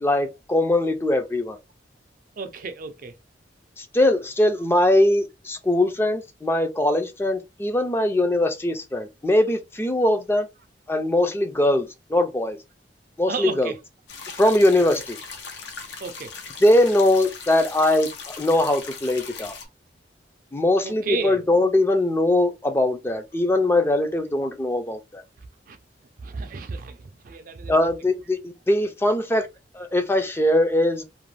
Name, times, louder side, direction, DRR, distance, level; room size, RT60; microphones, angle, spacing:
voice 1, 0.0-1.6 3.8-10.5 10.9-12.6 13.2-13.7 14.4-15.2 16.6-19.6 20.5-25.2 27.7-29.5 29.7-31.0, left 1 dB, 15° left, 0.3 m, -21 dB
voice 2, 2.4-3.1 13.3-13.8 16.0-16.3 20.8-21.4 25.7-25.8 26.2-27.8, right 4 dB, 50° right, 0.4 m, -32 dB
sound 1, 14.1-19.6, left 5 dB, 90° left, 0.7 m, -39 dB
2.5 x 2.2 x 3.1 m
head